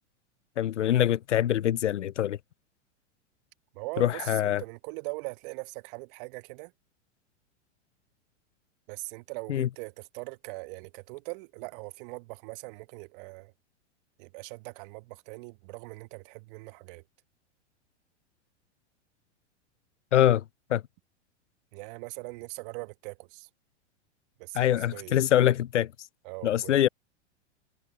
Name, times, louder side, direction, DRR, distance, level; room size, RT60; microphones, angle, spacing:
voice 1, 0.6-2.4 4.0-4.6 9.5-9.7 20.1-20.4 20.7-20.8 24.5-25.9 26.4-26.9, left 11 dB, 85° left, 0.5 m, -24 dB
voice 2, 3.7-6.7 8.9-13.5 14.2-17.0 21.7-23.5 24.4-25.2 26.2-26.8, right 29 dB, 50° right, 1.4 m, -41 dB
hypercardioid pair, 100°, 35 cm